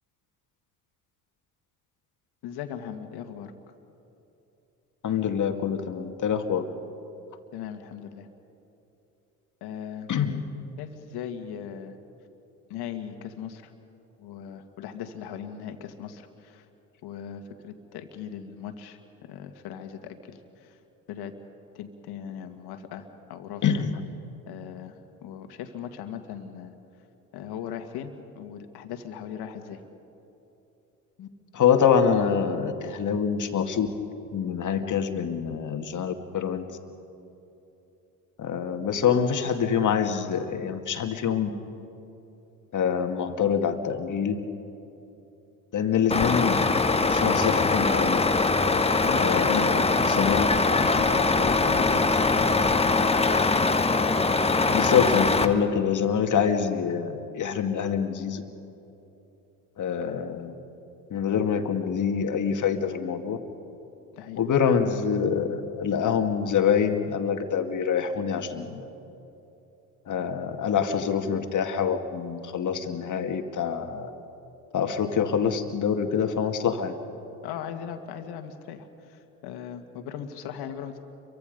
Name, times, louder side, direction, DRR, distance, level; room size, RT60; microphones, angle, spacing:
voice 1, 2.4-3.5 7.5-8.3 9.6-10.1 10.8-11.9 12.7-13.7 14.2-16.7 17.0-20.8 21.1-21.3 21.7-23.8 24.5-26.7 27.3-29.8 49.0-52.5 64.1-64.4 77.4-81.0, left 8 dB, 60° left, 6 dB, 2.2 m, -38 dB
voice 2, 5.0-6.6 10.1-10.4 23.6-24.0 31.2-31.3 31.5-33.9 34.3-36.7 38.4-41.5 42.7-44.4 45.7-46.7 47.1-48.2 49.2-49.7 50.1-50.5 54.7-58.4 59.8-60.5 61.1-63.4 64.4-68.8 70.1-74.1 74.7-77.0, left 7 dB, 40° left, 6 dB, 2.2 m, -25 dB
Truck, 46.1-55.5, left 3 dB, 15° left, 1.4 m, -22 dB
29.5 x 23.5 x 5.4 m, 3.0 s
hypercardioid pair, 60°, 44 cm